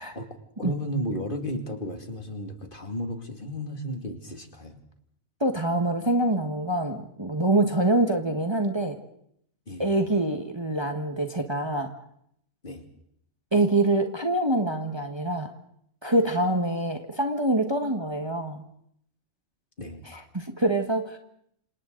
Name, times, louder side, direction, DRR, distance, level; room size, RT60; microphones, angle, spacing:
voice 1, 0.0-4.8 9.7-9.9 12.6-12.8 19.8-20.0, equal, 40° left, 4 dB, 2.5 m, -34 dB
voice 2, 5.4-9.0 9.8-11.9 13.5-15.5 16.0-18.6 20.0-21.2, right 1 dB, 20° right, 4 dB, 1.5 m, -25 dB
29.5 x 27.0 x 4.0 m, 0.71 s
omnidirectional pair, 1.4 m